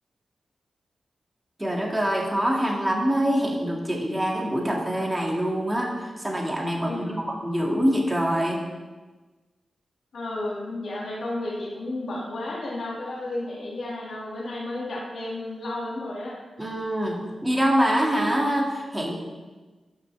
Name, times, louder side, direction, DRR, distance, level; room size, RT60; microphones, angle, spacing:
voice 1, 1.6-7.1 7.4-8.6 16.6-19.1, equal, 15° right, -1 dB, 2.0 m, -25 dB
voice 2, 6.9-7.3 10.1-16.3, left 2 dB, 75° left, -5 dB, 2.2 m, -32 dB
12.0 x 6.0 x 3.4 m, 1.3 s
cardioid pair, 65°, 0 cm